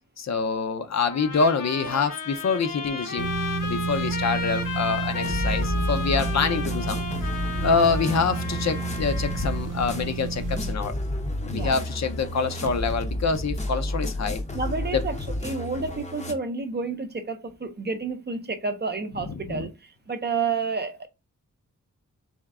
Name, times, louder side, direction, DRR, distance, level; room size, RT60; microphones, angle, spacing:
voice 1, 0.2-3.3 3.6-7.0 7.6-11.0 11.4-14.4 14.9-15.0 19.3-19.7, left 5 dB, 60° left, 0.6 m, -26 dB
Trumpet, 1.0-9.7, left 4 dB, 85° left, 1.3 m, -34 dB
sound 1, 3.2-10.7, right 4 dB, 80° right, 0.6 m, -31 dB
sound 2, 5.2-16.3, left 1 dB, 20° left, 0.6 m, -31 dB
voice 2, 14.5-15.2 15.4-21.1, right 4 dB, 35° right, 0.6 m, -30 dB
3.5 x 3.1 x 3.5 m
wide cardioid pair, 165°, 31 cm